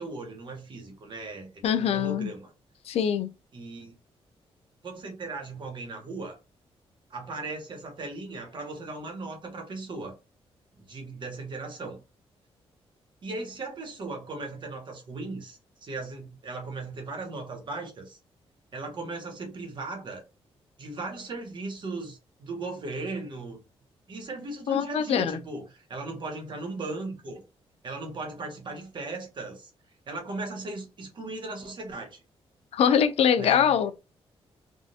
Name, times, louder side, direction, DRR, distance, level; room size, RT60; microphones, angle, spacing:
voice 1, 0.0-2.5 3.5-3.9 4.8-6.4 7.1-10.2 10.8-12.0 13.2-18.2 18.7-20.2 20.8-23.6 24.1-27.4 27.8-29.7 30.1-32.2 33.4-33.7, right 3 dB, 50° right, 1.1 m, -37 dB
voice 2, 1.6-2.3 2.9-3.3 24.7-25.4 32.7-33.9, left 8 dB, 75° left, 0.4 m, -23 dB
3.5 x 2.4 x 2.7 m
cardioid pair, 110°, 10 cm